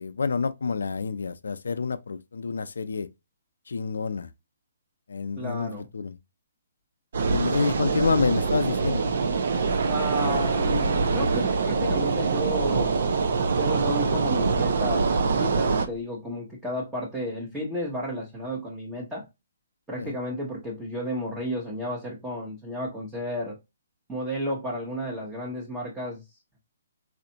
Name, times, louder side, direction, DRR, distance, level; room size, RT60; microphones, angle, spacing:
voice 1, 0.0-3.1 3.7-4.3 5.1-6.1 7.3-9.0 20.0-20.1, left 4 dB, 90° left, 0.4 m, -28 dB
voice 2, 5.4-5.9 9.9-13.2 13.6-19.2 19.9-23.6 24.1-26.2, equal, 10° right, 0.9 m, -32 dB
sound 1, 7.1-15.9, right 4 dB, 65° right, 0.6 m, -24 dB
4.2 x 2.5 x 2.8 m
hypercardioid pair, 155°, 0 cm